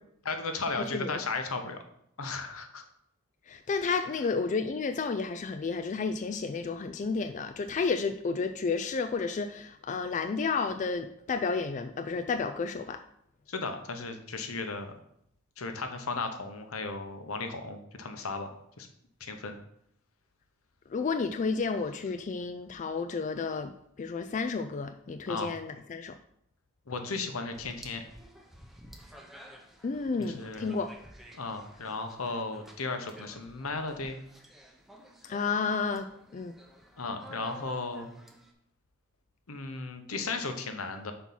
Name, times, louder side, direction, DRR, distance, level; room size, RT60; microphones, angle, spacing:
voice 1, 0.2-1.8 2.2-2.8 13.5-14.9 15.6-18.9 19.2-19.6 25.3-25.6 26.9-28.0 30.2-30.7 31.4-34.2 37.0-38.1 39.5-41.1, left 3 dB, 80° left, 6 dB, 0.9 m, -35 dB
voice 2, 0.8-1.2 3.5-13.0 20.9-26.2 29.8-30.9 35.2-36.1 36.3-36.5, left 4 dB, 35° left, 7 dB, 0.3 m, -31 dB
sound 1, 27.5-38.5, equal, ahead, 0.7 m, -53 dB
5.9 x 4.4 x 5.5 m, 0.73 s
head